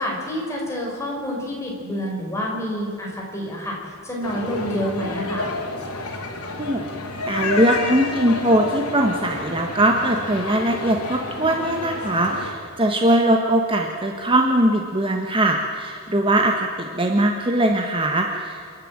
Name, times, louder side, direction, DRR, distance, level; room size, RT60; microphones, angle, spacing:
voice 1, 0.0-5.5, equal, 15° left, -2 dB, 5.5 m, -28 dB
sound 1, 4.2-12.5, left 3 dB, 80° left, 3.6 m, -30 dB
voice 2, 7.3-18.7, right 1 dB, 25° right, 2 dB, 1.4 m, -21 dB
28.0 x 11.0 x 8.9 m, 2.3 s
head